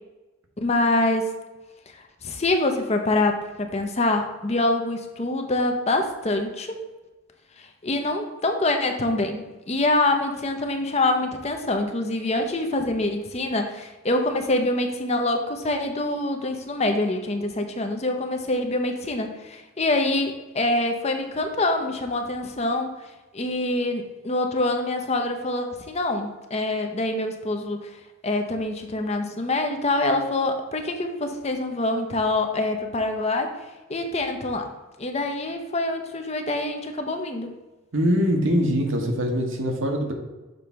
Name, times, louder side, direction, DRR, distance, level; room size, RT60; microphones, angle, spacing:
voice 1, 0.6-1.3 2.2-6.8 7.6-22.9 23.3-27.9 28.2-33.5 33.9-34.7 35.0-37.5, left 2 dB, 30° left, 5 dB, 0.7 m, -25 dB
voice 2, 37.9-40.1, equal, 70° right, 2 dB, 1.2 m, -23 dB
6.8 x 3.2 x 5.6 m, 1.1 s
head